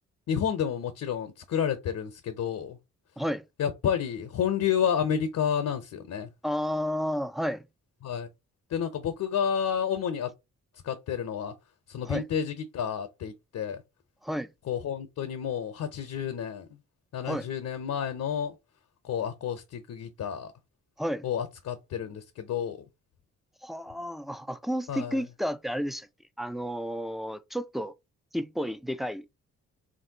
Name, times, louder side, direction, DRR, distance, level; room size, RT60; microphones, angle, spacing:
voice 1, 0.3-2.8 3.6-6.3 8.0-8.3 8.7-10.3 10.7-11.5 11.9-13.8 14.6-16.8 17.1-18.5 19.0-20.5 21.2-22.8 24.9-25.2, left 8 dB, 60° left, 0.6 m, -30 dB
voice 2, 6.4-7.6 12.1-12.2 14.2-14.5 17.3-17.4 21.0-21.2 23.6-26.1 26.4-27.9 28.3-29.2, equal, ahead, 0.3 m, -31 dB
3.2 x 2.6 x 2.7 m
supercardioid pair, 50°, 32 cm